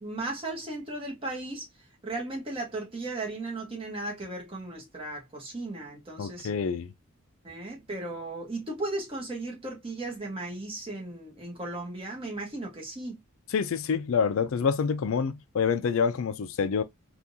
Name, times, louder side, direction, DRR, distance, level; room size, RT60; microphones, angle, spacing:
voice 1, 0.0-1.7 2.0-6.5 7.4-13.2, right 2 dB, 25° right, 1.1 m, -36 dB
voice 2, 6.2-6.9 13.5-16.8, left 6 dB, 70° left, 0.4 m, -27 dB
3.6 x 2.4 x 2.7 m
head